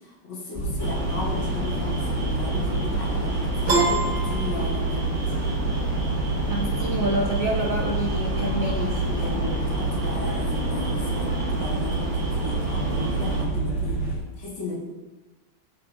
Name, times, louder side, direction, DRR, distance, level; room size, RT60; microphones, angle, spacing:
voice 1, 0.0-5.0 8.7-14.0 14.4-14.8, left 2 dB, 65° left, -9 dB, 2.7 m, -35 dB
sound 1, 0.5-14.2, right 2 dB, 35° left, 1.8 m, -27 dB
sound 2, 0.8-13.4, equal, 90° right, 3.3 m, -33 dB
Piano, 3.7-5.2, right 3 dB, 50° right, 2.8 m, -25 dB
voice 2, 6.4-8.8, right 2 dB, 75° right, -1 dB, 0.7 m, -27 dB
13.5 x 6.0 x 2.5 m, 1.2 s
omnidirectional pair, 2.4 m